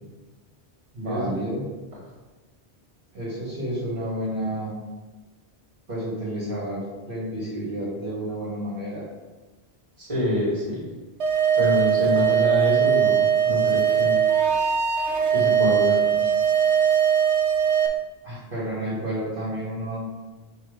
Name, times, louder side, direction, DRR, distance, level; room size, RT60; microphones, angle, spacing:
voice 1, 0.9-1.7 3.1-4.8 5.9-9.0 15.5-16.3 18.2-20.1, right 1 dB, 50° right, -8 dB, 1.7 m, -31 dB
voice 2, 10.0-10.8 11.5-14.2 15.3-16.0, left 1 dB, 30° right, -6 dB, 2.1 m, -26 dB
sound 1, 11.2-17.9, right 8 dB, 75° right, 1.1 m, -20 dB
6.8 x 2.8 x 5.0 m, 1.2 s
omnidirectional pair, 1.1 m